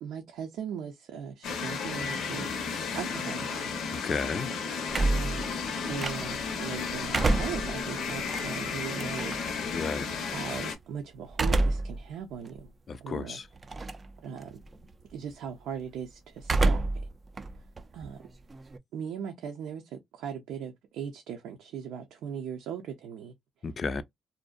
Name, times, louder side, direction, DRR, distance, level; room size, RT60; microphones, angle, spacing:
voice 1, 0.0-2.5 2.9-3.7 4.9-5.4 5.9-9.4 10.2-12.7 13.0-13.4 14.2-14.6 15.1-16.8 17.9-18.2 18.9-23.3, right 7 dB, 85° right, 0.5 m, -38 dB
sound 1, 1.4-10.8, left 5 dB, 80° left, 0.6 m, -33 dB
voice 2, 3.9-4.5 9.7-10.1 12.9-13.5 23.6-24.0, left 4 dB, 40° left, 0.3 m, -32 dB
sound 2, 4.9-6.5 6.9-9.5 11.3-12.0 12.5-12.6 13.6-14.1 14.4-14.8 16.4-17.1 17.4-18.8, right 2 dB, 30° right, 0.3 m, -28 dB
2.6 x 2.1 x 2.3 m
cardioid pair, 90°, 0 cm